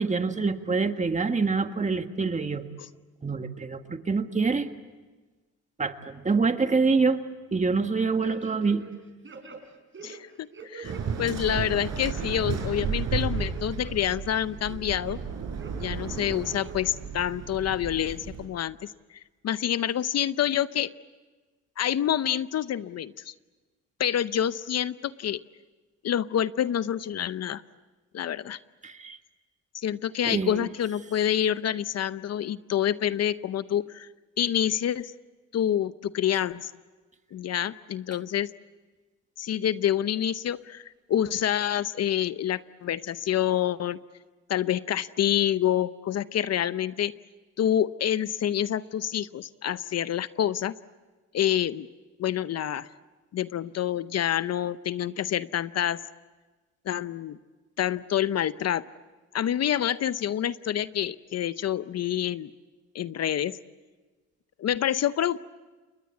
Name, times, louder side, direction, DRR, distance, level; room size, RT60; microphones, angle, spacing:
voice 1, 0.0-2.6 3.2-4.7 5.8-7.2 7.5-8.8 28.8-29.2 30.2-30.6, right 4 dB, 25° right, 7 dB, 1.7 m, -26 dB
sound 1, 8.2-9.0 9.2-11.0 11.4-11.8 12.3-12.9 13.2-14.1 14.5-15.2 15.6-15.7 16.3-16.9 17.3-17.4, right 5 dB, 40° right, 4.8 m, -45 dB
voice 2, 10.0-10.9 11.2-15.2 15.8-18.9 19.4-20.9 21.8-23.3 24.0-25.4 26.0-27.6 28.1-28.6 29.7-34.1 34.4-35.1 35.5-36.7 37.3-38.5 39.4-44.0 44.5-47.1 47.6-50.7 51.3-51.9 52.2-52.9 53.3-56.0 56.9-57.4 57.8-58.8 59.3-62.5 62.9-63.6 64.6-65.5, left 10 dB, 55° left, 15 dB, 0.7 m, -27 dB
Waves surf, 10.8-18.5, right 6 dB, 60° right, 5.1 m, -33 dB
29.0 x 21.5 x 8.4 m, 1.3 s
cardioid pair, 90°, 30 cm